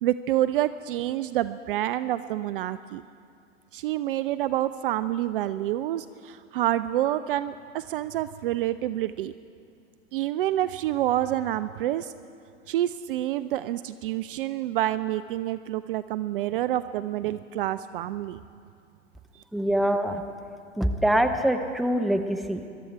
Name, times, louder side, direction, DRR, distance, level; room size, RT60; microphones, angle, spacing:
voice 1, 0.0-3.0 3.7-9.3 10.1-12.1 12.7-18.4 19.3-19.4, right 13 dB, 45° right, 14 dB, 0.4 m, -28 dB
voice 2, 19.5-20.2 20.8-22.6, right 1 dB, ahead, 6 dB, 0.6 m, -24 dB
22.0 x 12.5 x 4.6 m, 2.3 s
figure-of-eight pair, 95°, 38 cm